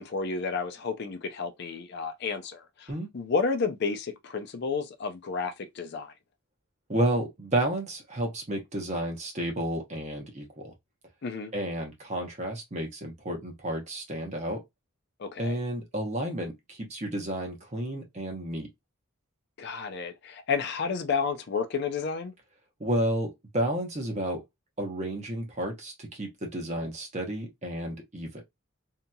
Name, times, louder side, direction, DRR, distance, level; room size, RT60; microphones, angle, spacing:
voice 1, 0.0-6.1 11.2-11.5 15.2-15.6 19.6-22.3, left 5 dB, 50° left, 0.4 m, -31 dB
voice 2, 6.9-10.7 11.5-14.6 15.4-18.7 22.8-24.4 24.8-28.4, right 1 dB, 35° right, 0.9 m, -31 dB
2.8 x 2.6 x 2.2 m
head